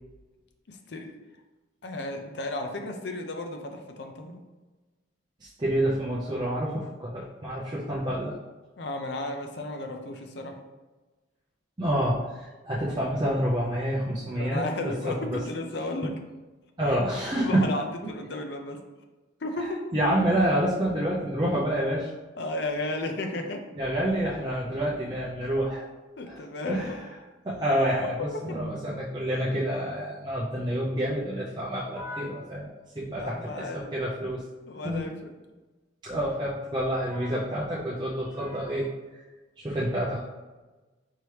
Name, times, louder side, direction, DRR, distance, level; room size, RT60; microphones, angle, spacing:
voice 1, 0.7-1.1 1.8-4.4 8.8-10.6 14.3-16.2 16.9-17.0 17.4-18.8 19.4-19.9 22.4-23.6 26.2-27.0 28.3-28.6 33.1-33.9 34.7-35.3, left 2 dB, 60° left, 4 dB, 0.5 m, -34 dB
voice 2, 5.4-8.4 11.8-15.4 16.8-17.7 19.9-22.1 23.8-25.8 26.2-26.4 26.7-26.9 27.4-32.7 32.9-34.4 34.8-35.0 36.0-38.9 39.6-40.3, right 1 dB, 20° right, -7 dB, 0.5 m, -28 dB
4.6 x 2.9 x 3.2 m, 1.2 s
head